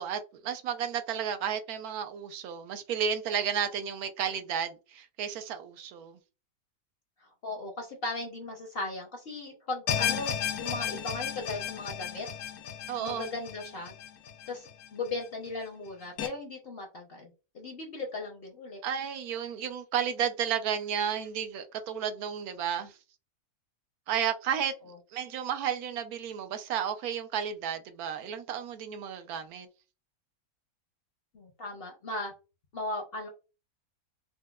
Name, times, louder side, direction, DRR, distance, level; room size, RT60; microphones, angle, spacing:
voice 1, 0.0-6.2 12.9-13.3 18.8-23.0 24.1-24.7 25.1-29.7, right 8 dB, 80° right, 1.1 m, -32 dB
voice 2, 7.2-12.3 13.0-13.9 14.5-18.8 31.3-32.3 32.7-33.3, left 2 dB, 50° left, 0.7 m, -37 dB
sound 1, 9.9-15.1 15.5-15.6 16.2-16.3, left 9 dB, 80° left, 1.1 m, -34 dB
4.3 x 2.1 x 2.2 m
omnidirectional pair, 1.6 m